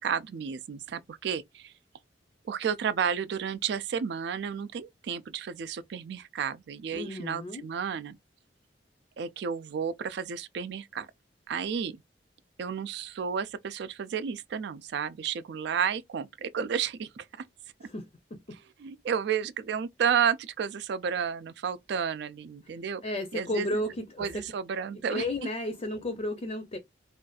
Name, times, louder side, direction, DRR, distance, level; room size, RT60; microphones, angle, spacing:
voice 1, 0.0-1.7 2.5-8.2 9.2-11.1 11.5-12.0 12.6-17.5 18.8-23.0 23.3-23.8 24.2-25.2, right 7 dB, 70° right, 0.3 m, -32 dB
voice 2, 6.9-7.6 17.8-18.1 22.6-22.7 23.0-24.4 25.1-26.8, left 1 dB, 35° left, 0.5 m, -33 dB
2.5 x 2.3 x 2.3 m
head